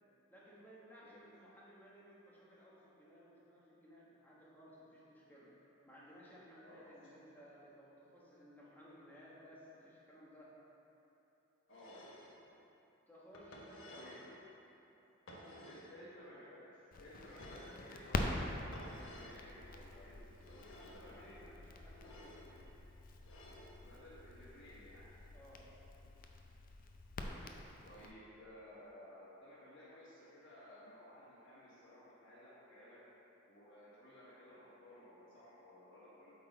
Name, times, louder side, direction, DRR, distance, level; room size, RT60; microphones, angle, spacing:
voice 1, 0.3-5.5 5.8-10.6 13.1-14.4 15.3-15.8 20.7-22.7 25.3-25.7, equal, 10° left, -7 dB, 1.2 m, -59 dB
voice 2, 1.0-1.3 6.6-7.0 11.7-12.0 13.8-14.2 15.6-21.4 23.8-25.1 27.1-33.0 33.5-36.3, left 1 dB, 65° left, -11 dB, 1.4 m, -57 dB
sound 1, 11.7-12.4 13.3-14.3 15.3-16.0 17.2-17.9 18.7-19.4 20.4-21.1 21.9-22.5 23.2-23.8, left 1 dB, 80° left, 0.9 m, -55 dB
Crackle, 16.9-28.1, left 2 dB, 45° left, 0.4 m, -45 dB
8.3 x 3.9 x 4.0 m, 2.9 s
head